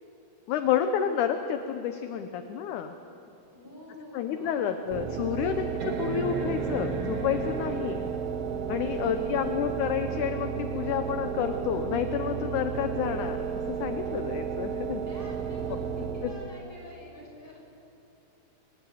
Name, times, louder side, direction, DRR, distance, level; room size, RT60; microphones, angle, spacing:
voice 1, 0.5-3.0 4.1-8.0 8.7-15.0 15.7-15.8 16.2-16.3, left 9 dB, 75° left, 7 dB, 1.9 m, -30 dB
voice 2, 3.5-5.0 8.7-9.5 15.0-17.6, left 1 dB, 5° right, -4 dB, 6.2 m, -48 dB
sound 1, 3.6-3.7 4.3-4.4 5.8-8.3 10.0-10.1, right 3 dB, 50° right, 2.1 m, -36 dB
sound 2, 4.9-16.6, right 7 dB, 85° right, 3.2 m, -33 dB
23.5 x 13.5 x 9.4 m, 2.8 s
omnidirectional pair, 4.4 m